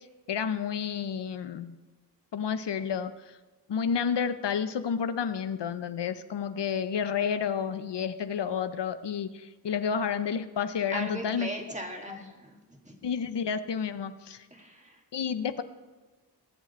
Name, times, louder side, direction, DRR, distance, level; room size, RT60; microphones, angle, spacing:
voice 1, 0.3-1.8 2.3-3.1 3.7-11.5 12.1-12.2 13.0-14.5 15.1-15.6, left 7 dB, 90° left, 12 dB, 0.7 m, -30 dB
voice 2, 10.9-13.0 14.5-15.0, right 1 dB, 15° right, 2 dB, 1.9 m, -39 dB
22.0 x 7.6 x 4.2 m, 1.2 s
wide cardioid pair, 80°, 41 cm